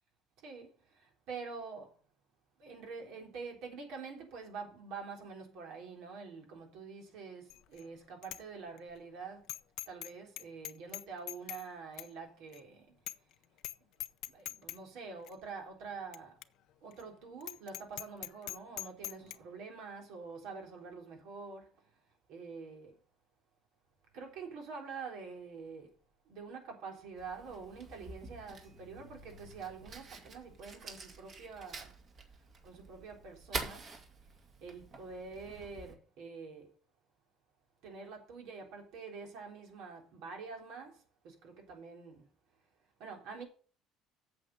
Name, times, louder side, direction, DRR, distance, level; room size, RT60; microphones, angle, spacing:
voice 1, 1.3-1.9 2.6-9.5 9.9-12.9 14.3-16.4 16.8-21.7 22.3-22.9 24.1-25.9 26.3-31.9 32.6-33.8 34.6-36.7 37.8-41.0 41.2-42.2 43.0-43.4, right 5 dB, 70° right, 3.8 m, -46 dB
Bicycle bell, 7.5-7.8 8.2-8.4 8.8-8.9 9.5-10.1 10.4-11.6 12.0-12.1 12.5-12.6 13.1-13.3 13.6-13.7 14.0-14.8 15.3-15.4 16.1-16.2 16.4-16.5 16.9-17.0 17.4-19.4, left 15 dB, 65° left, 0.6 m, -42 dB
Fire, 27.2-35.9, right 3 dB, 40° right, 2.4 m, -47 dB
8.4 x 7.4 x 6.4 m
cardioid pair, 125°, 0 cm